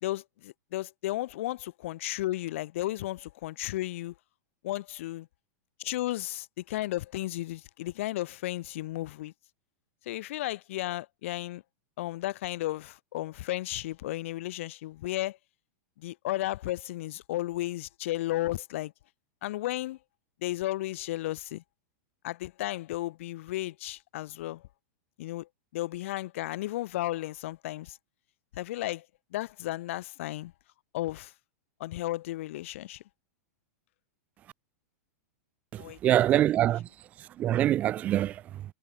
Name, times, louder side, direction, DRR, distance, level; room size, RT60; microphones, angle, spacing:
voice 1, 0.0-4.1 4.6-5.3 5.8-9.3 10.0-11.6 12.0-15.4 16.0-18.9 19.4-20.0 20.4-21.6 22.2-24.7 25.2-28.0 28.5-29.0 29.3-30.5 30.9-31.3 31.8-33.0 35.8-36.2, left 16 dB, 50° left, 1.7 m, -34 dB
voice 2, 35.7-36.9 37.2-38.6, right 12 dB, 15° right, 0.4 m, -25 dB
supercardioid pair, 175°, 9 cm